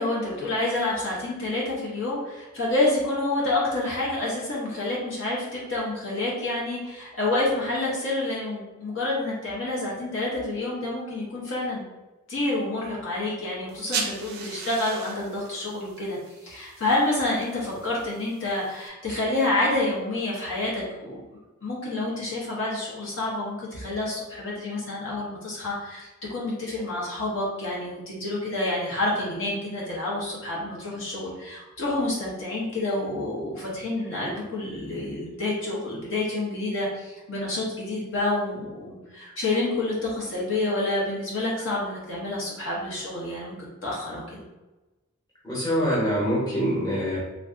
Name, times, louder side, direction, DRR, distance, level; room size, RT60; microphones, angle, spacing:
voice 1, 0.0-11.8 12.3-16.2 16.4-21.2 21.6-43.5 43.8-44.4, left 2 dB, 60° left, -5 dB, 0.8 m, -28 dB
sound 1, 13.7-18.9, right 5 dB, 45° right, 0.4 m, -38 dB
voice 2, 45.4-47.2, equal, 20° left, -8 dB, 0.9 m, -24 dB
3.3 x 2.5 x 2.5 m, 1.1 s
head